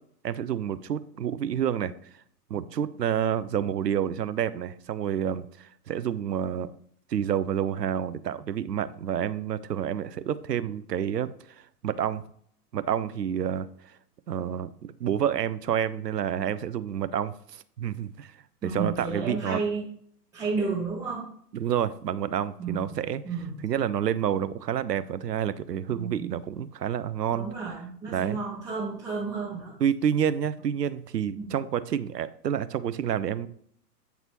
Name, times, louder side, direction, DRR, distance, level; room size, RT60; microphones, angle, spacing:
voice 1, 0.2-1.9 2.5-6.7 7.1-11.3 11.8-12.2 12.7-13.7 14.3-18.3 18.6-19.6 21.5-23.2 23.6-27.5 28.1-28.4 29.8-33.5, right 9 dB, 80° right, 15 dB, 0.6 m, -29 dB
voice 2, 18.6-19.8 20.3-21.3 22.6-23.0 23.2-23.6 25.9-26.3 27.3-29.7 31.3-31.5, right 4 dB, 5° right, -7 dB, 0.9 m, -32 dB
8.1 x 3.9 x 3.0 m, 0.63 s
figure-of-eight pair, 110°, 48 cm